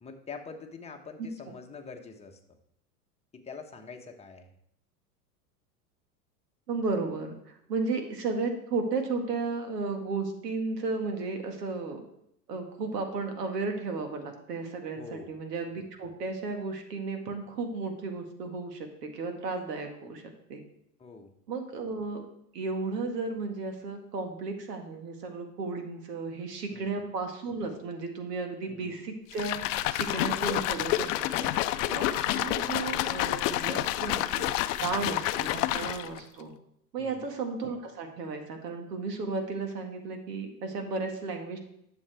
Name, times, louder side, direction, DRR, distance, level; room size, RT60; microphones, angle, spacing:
voice 1, 0.0-2.4 3.3-4.5 15.0-15.4 21.0-21.3 26.7-27.0 28.7-29.0 34.8-35.2 37.0-37.3, left 4 dB, 15° left, 3 dB, 1.2 m, -45 dB
voice 2, 6.7-7.3 7.7-12.0 12.5-20.2 20.5-20.6 21.5-22.3 22.5-31.5 31.9-34.5 34.8-36.5 36.9-41.6, right 3 dB, 75° right, 4 dB, 1.9 m, -34 dB
sound 1, 29.3-36.2, left 14 dB, 55° left, 0.6 m, -29 dB
11.0 x 7.3 x 3.4 m, 0.75 s
hypercardioid pair, 100°, 48 cm